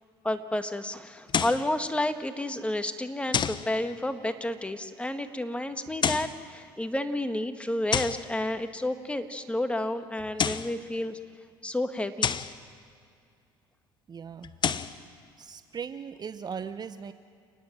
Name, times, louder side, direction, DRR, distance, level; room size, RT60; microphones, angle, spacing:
voice 1, 0.2-11.2 11.6-12.4, left 1 dB, 10° left, 8 dB, 1.6 m, -31 dB
sound 1, 1.3-1.7 3.3-3.7 5.9-6.4 7.9-8.3 10.2-10.7 12.2-12.6 14.4-15.0, left 7 dB, 40° left, 0.9 m, -28 dB
voice 2, 14.1-14.5 15.4-17.1, right 6 dB, 35° right, 11 dB, 0.8 m, -38 dB
29.0 x 10.5 x 9.0 m, 2.3 s
hypercardioid pair, 65°, 12 cm